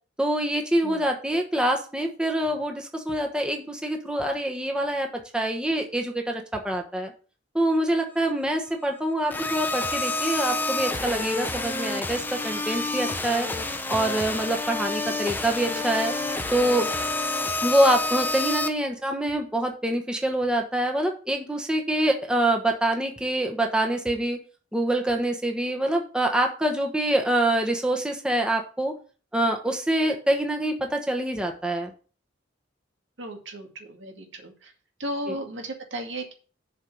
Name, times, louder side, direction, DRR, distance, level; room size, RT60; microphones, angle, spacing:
voice 1, 0.2-5.1 5.3-7.1 7.5-13.5 13.9-16.1 16.5-16.9 17.6-24.4 24.7-28.9 29.3-31.9 35.3-35.4, right 1 dB, 5° right, 2 dB, 1.2 m, -25 dB
sound 1, 9.3-18.7, left 2 dB, 10° left, 0.7 m, -28 dB
voice 2, 33.2-34.7 35.0-36.3, right 1 dB, 85° right, 3 dB, 2.1 m, -35 dB
7.5 x 4.6 x 7.0 m, 0.37 s
head